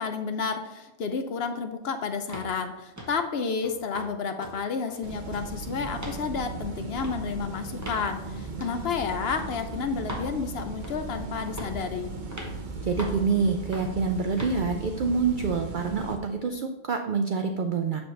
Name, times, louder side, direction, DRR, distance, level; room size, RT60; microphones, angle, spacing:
voice 1, 0.0-12.1, left 5 dB, 60° left, 7 dB, 0.7 m, -31 dB
sound 1, 2.3-2.5 3.0-3.2 3.6-4.1 4.4-4.6 4.9-5.5 6.0-6.2 7.0-7.2 7.8-8.1 8.6-8.8 9.4-9.5 10.1-10.3 10.8-11.1 11.6-11.8 12.3-12.5 13.0-13.2 13.7-13.9 14.4-14.6, equal, 15° right, 1.0 m, -39 dB
sound 2, 5.0-16.2, right 3 dB, 40° right, 0.9 m, -37 dB
voice 2, 12.8-18.0, right 5 dB, 70° right, 5 dB, 0.4 m, -27 dB
7.0 x 6.6 x 3.3 m, 1.1 s
omnidirectional pair, 1.3 m